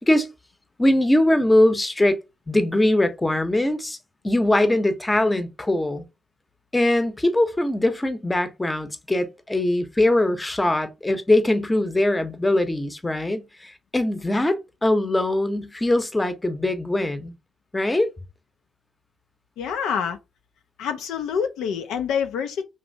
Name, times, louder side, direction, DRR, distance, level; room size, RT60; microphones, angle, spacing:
voice 1, 0.8-2.2 2.5-4.0 4.2-6.0 6.7-17.3 17.7-18.1, left 1 dB, 15° left, 0.7 m, -21 dB
voice 2, 19.6-20.2 20.8-22.6, left 7 dB, 85° left, 0.4 m, -26 dB
3.2 x 2.6 x 2.6 m
cardioid pair, 70°, 0 cm